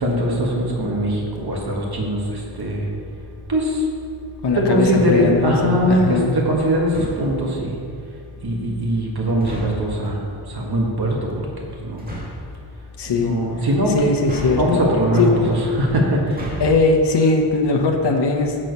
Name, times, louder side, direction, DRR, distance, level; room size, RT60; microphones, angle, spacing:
voice 1, 0.0-2.2 2.6-2.8 3.5-3.7 4.5-7.6 8.4-10.2 10.5-11.2 11.9-12.0 13.1-14.1 14.6-16.2, equal, 50° right, -2 dB, 1.5 m, -21 dB
voice 2, 4.4-6.4 13.0-13.4 13.9-14.8 15.2-15.5 16.6-18.6, left 3 dB, 60° left, 2 dB, 0.9 m, -19 dB
sound 1, 6.9-7.4 9.4-10.0 12.0-12.5 14.2-15.0 16.2-16.9, equal, 20° right, 1.8 m, -31 dB
7.5 x 6.2 x 5.3 m, 2.4 s
wide cardioid pair, 105°, 47 cm